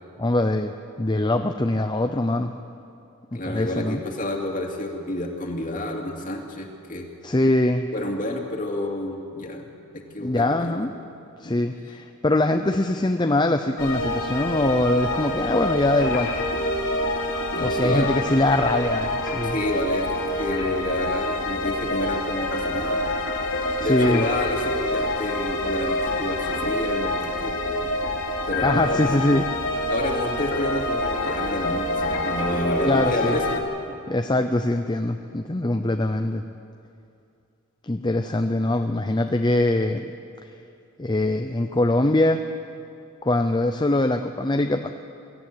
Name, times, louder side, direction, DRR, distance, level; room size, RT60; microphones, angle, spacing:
voice 1, 0.2-2.5 3.4-4.0 7.2-7.8 10.2-10.9 11.4-16.3 17.6-19.6 23.8-24.3 28.6-29.5 32.8-33.4 34.1-36.4 37.8-40.1 40.4-40.5 41.0-42.4 43.2-44.9, left 2 dB, 20° left, 6 dB, 0.6 m, -23 dB
voice 2, 3.3-7.1 7.9-9.7 9.9-10.9 11.4-11.5 17.5-18.1 19.4-23.1 23.8-27.6 28.5-29.2 29.9-33.4, left 1 dB, 35° left, 1 dB, 2.6 m, -29 dB
sound 1, 13.8-33.6, left 1 dB, 65° left, 3.2 m, -26 dB
24.0 x 14.5 x 8.6 m, 2.6 s
head